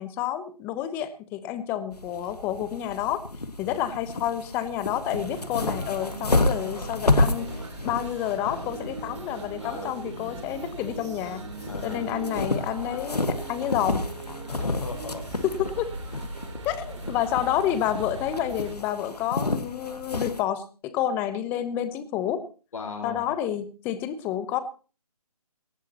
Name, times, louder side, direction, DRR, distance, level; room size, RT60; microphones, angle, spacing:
voice 1, 0.0-3.2 3.6-7.5 7.8-11.4 11.8-14.1 15.4-15.9 16.6-22.4 23.0-24.6, left 11 dB, 10° left, 13 dB, 0.8 m, -29 dB
sound 1, 1.9-20.4, left 2 dB, 85° left, 1.8 m, -31 dB
sound 2, 5.1-18.7, right 3 dB, 50° right, 3.4 m, -39 dB
voice 2, 9.6-9.9 11.7-12.3 14.5-15.3 16.1-16.2 22.7-23.3, left 5 dB, 60° left, 4 dB, 4.2 m, -37 dB
18.5 x 16.0 x 2.9 m, 0.35 s
figure-of-eight pair, 150°, 20 cm